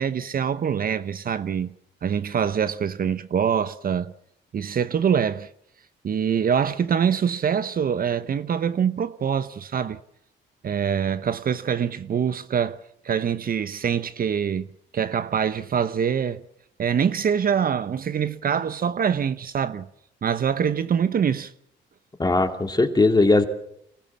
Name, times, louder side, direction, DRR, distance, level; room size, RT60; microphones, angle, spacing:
voice 1, 0.0-4.1 4.5-5.5 6.0-10.0 10.6-16.4 16.8-19.9 20.2-21.5, right 7 dB, 45° right, 0.9 m, -24 dB
voice 2, 22.2-23.5, left 2 dB, 20° left, 2.6 m, -19 dB
26.5 x 15.5 x 7.4 m
cardioid pair, 90°, 20 cm